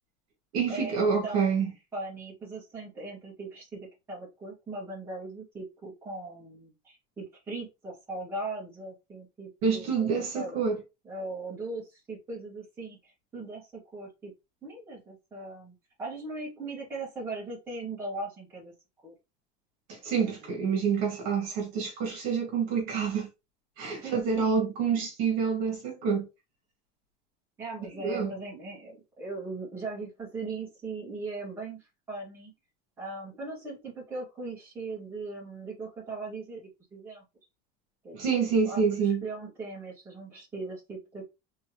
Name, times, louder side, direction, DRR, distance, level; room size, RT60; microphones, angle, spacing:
voice 1, 0.5-1.7 9.6-10.8 19.9-23.3 23.8-26.3 28.0-28.3 38.1-39.2, right 6 dB, 50° right, 2.1 m, -27 dB
voice 2, 1.2-1.5 1.9-10.6 11.0-14.3 14.6-18.7 19.0-19.1 20.1-20.3 24.0-24.7 27.6-32.5 33.0-37.2 38.0-41.3, right 3 dB, 10° right, 2.1 m, -39 dB
4.3 x 3.6 x 3.1 m
cardioid pair, 175°, 18 cm